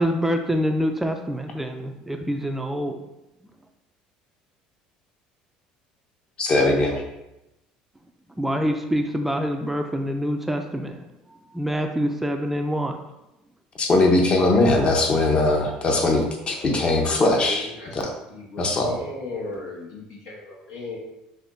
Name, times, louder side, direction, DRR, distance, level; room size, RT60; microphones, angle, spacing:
voice 1, 0.0-3.0 8.4-11.0 11.5-13.0, equal, 5° right, 5 dB, 0.4 m, -25 dB
voice 2, 6.4-7.0 13.8-17.7 17.9-18.1 18.6-18.9, left 2 dB, 35° left, 2 dB, 0.9 m, -20 dB
voice 3, 16.5-18.0 18.3-21.0, left 2 dB, 90° left, -4 dB, 1.4 m, -36 dB
5.9 x 2.7 x 2.6 m, 0.91 s
supercardioid pair, 95°, 3 cm